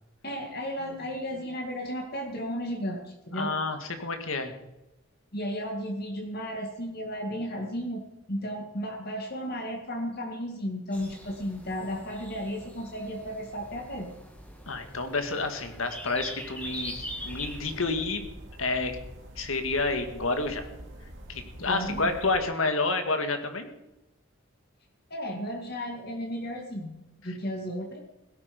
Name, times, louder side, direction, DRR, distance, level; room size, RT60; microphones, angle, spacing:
voice 1, 0.2-3.5 5.3-8.0 8.3-14.1 21.6-22.1 25.1-27.0 27.2-28.0, equal, 45° left, 2 dB, 2.1 m, -34 dB
voice 2, 3.3-4.5 14.7-18.2 18.6-19.0 19.4-20.6 21.3-23.7, left 3 dB, 70° left, 7 dB, 2.0 m, -29 dB
sound 1, 10.9-17.8, equal, 5° left, 2.1 m, -42 dB
sound 2, 16.6-22.4, right 1 dB, 60° right, 2.7 m, -45 dB
17.0 x 13.5 x 5.3 m, 0.96 s
head